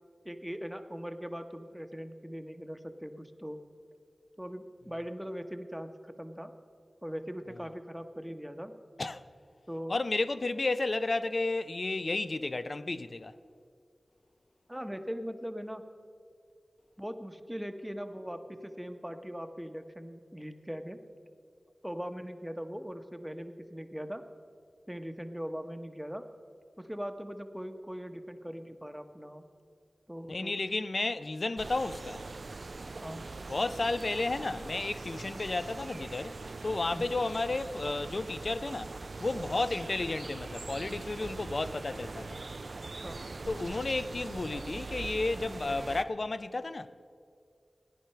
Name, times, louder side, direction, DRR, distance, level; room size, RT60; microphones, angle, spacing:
voice 1, 0.2-3.6 4.4-6.5 7.0-8.7 9.7-9.9 14.7-15.9 17.0-21.0 21.8-24.2 24.9-26.2 26.8-29.4 30.1-30.6 33.0-33.3 36.9-37.1 43.0-43.2, equal, 5° right, 0.9 m, -40 dB
voice 2, 9.9-13.3 30.3-32.2 33.5-36.4 36.6-38.9 39.2-42.4 43.5-46.9, left 2 dB, 55° left, 0.5 m, -32 dB
sound 1, 31.6-46.0, right 3 dB, 60° right, 0.4 m, -42 dB
15.0 x 10.0 x 5.7 m
wide cardioid pair, 60°, 0 cm